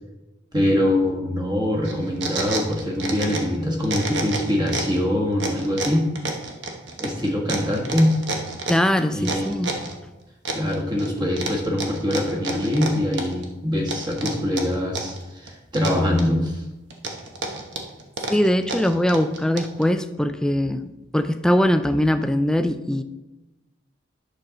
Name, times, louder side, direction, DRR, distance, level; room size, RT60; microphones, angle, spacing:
voice 1, 0.5-6.1 7.0-8.1 9.1-9.7 10.5-16.6, left 1 dB, 20° right, 0 dB, 1.5 m, -23 dB
sound 1, 1.8-3.6 3.8-5.0 5.4-9.9 10.5-11.1 11.4-13.5 13.9-15.2 15.5-16.5 16.9-19.8, right 3 dB, 60° right, 1.1 m, -30 dB
voice 2, 8.7-9.8 18.3-23.0, equal, 5° left, 9 dB, 0.3 m, -21 dB
9.9 x 6.4 x 3.8 m, 1.1 s
head